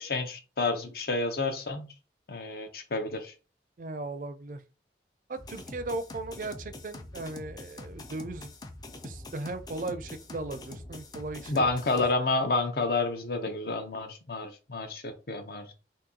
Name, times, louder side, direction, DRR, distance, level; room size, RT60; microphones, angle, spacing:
voice 1, 0.0-1.9 2.3-3.3 11.5-15.7, left 3 dB, 55° left, 0.7 m, -30 dB
voice 2, 3.8-4.6 5.3-8.5 9.0-11.6 11.9-12.0, right 2 dB, 45° right, 0.4 m, -37 dB
sound 1, 5.4-12.1, left 2 dB, 20° left, 0.4 m, -44 dB
2.8 x 2.6 x 3.7 m
head